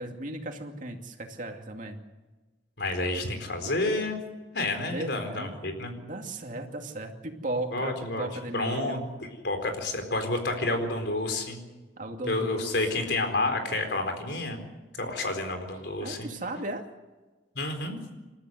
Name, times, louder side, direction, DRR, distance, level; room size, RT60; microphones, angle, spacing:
voice 1, 0.0-2.0 4.8-5.6 6.0-9.0 12.0-13.0 16.0-16.8, right 2 dB, 45° right, 3 dB, 2.6 m, -36 dB
voice 2, 2.8-4.2 4.5-5.9 7.7-8.3 8.5-9.0 9.4-11.6 12.3-14.6 15.0-16.3 17.5-18.0, left 2 dB, 70° left, 6 dB, 4.4 m, -29 dB
28.5 x 13.5 x 8.1 m, 1.2 s
head